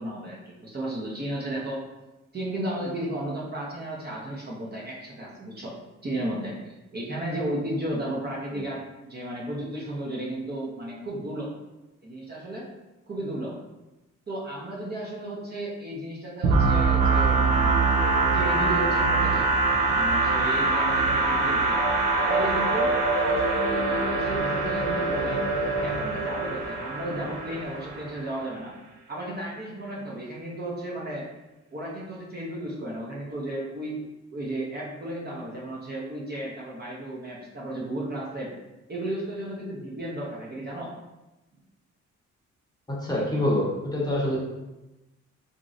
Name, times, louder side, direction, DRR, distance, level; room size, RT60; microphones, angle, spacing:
voice 1, 0.0-1.9 2.3-5.8 6.0-8.8 9.1-11.5 12.0-12.7 13.1-13.6 14.3-17.9 18.3-19.5 19.9-21.8 22.3-25.4 25.8-28.7 29.1-31.3 31.7-38.5 38.9-40.9, right 1 dB, 35° right, -4 dB, 0.8 m, -34 dB
sound 1, 16.4-28.2, right 3 dB, 85° right, 0.6 m, -23 dB
voice 2, 43.0-44.4, left 1 dB, 15° left, -6 dB, 0.9 m, -25 dB
3.0 x 2.6 x 2.5 m, 1.0 s
cardioid pair, 90°, 30 cm